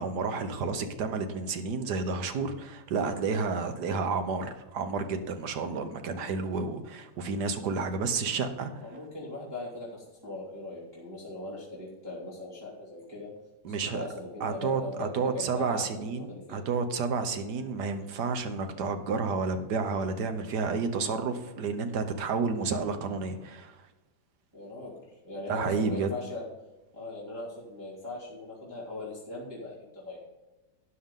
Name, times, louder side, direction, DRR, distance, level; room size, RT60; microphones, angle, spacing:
voice 1, 0.0-8.7 13.6-14.1 14.4-23.8 25.5-26.1, right 4 dB, 70° right, 8 dB, 1.6 m, -31 dB
voice 2, 8.8-13.3 13.7-16.6 24.5-26.4 26.9-30.2, left 2 dB, 15° right, -8 dB, 2.9 m, -40 dB
12.5 x 9.4 x 3.8 m, 1.1 s
omnidirectional pair, 1.9 m